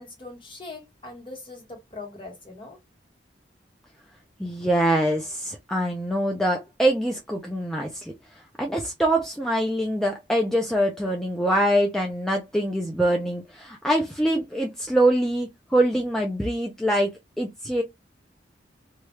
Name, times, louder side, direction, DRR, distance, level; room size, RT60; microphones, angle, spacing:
voice 1, 0.0-2.8, left 3 dB, 25° left, 1.1 m, -41 dB
voice 2, 4.4-8.1 8.6-17.1 17.4-17.8, right 1 dB, ahead, 0.4 m, -24 dB
3.0 x 2.3 x 3.1 m
head